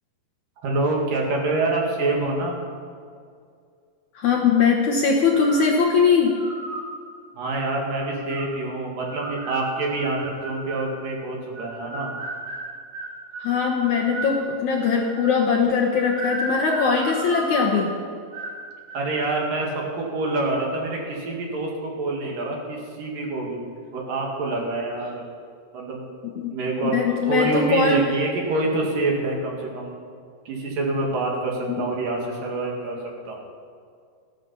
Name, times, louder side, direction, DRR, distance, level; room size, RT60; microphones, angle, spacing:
voice 1, 0.6-2.6 7.4-12.2 18.9-23.6 23.9-25.3 25.7-26.0 26.5-30.0 30.5-33.0 33.3-33.4, right 2 dB, 60° right, -1 dB, 3.5 m, -26 dB
voice 2, 4.2-6.4 13.4-18.0 26.4-26.5 26.9-28.0 31.7-31.8, left 5 dB, 65° left, 0 dB, 2.1 m, -21 dB
sound 1, 5.3-5.7 6.2-6.9 7.5-8.5 9.0-11.0 11.5-14.4 14.8-15.4 15.9-17.9 18.3-18.6 18.9-19.3, right 1 dB, 40° right, 4.2 m, -34 dB
15.5 x 13.0 x 5.6 m, 2.2 s
omnidirectional pair, 4.5 m